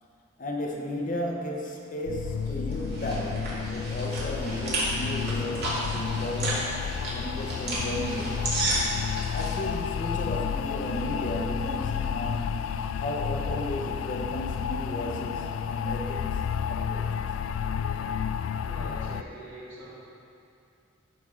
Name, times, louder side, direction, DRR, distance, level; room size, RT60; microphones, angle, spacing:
voice 1, 0.4-6.7 7.1-8.5 9.3-12.7 13.0-17.1, equal, 40° left, 0 dB, 0.8 m, -34 dB
sound 1, 2.1-19.2, left 7 dB, 85° left, 0.3 m, -31 dB
sound 2, 2.4-9.5, right 1 dB, 55° right, 2.1 m, -32 dB
voice 2, 18.6-20.0, right 1 dB, 85° right, -8 dB, 1.9 m, -43 dB
12.0 x 5.3 x 3.7 m, 2.5 s
head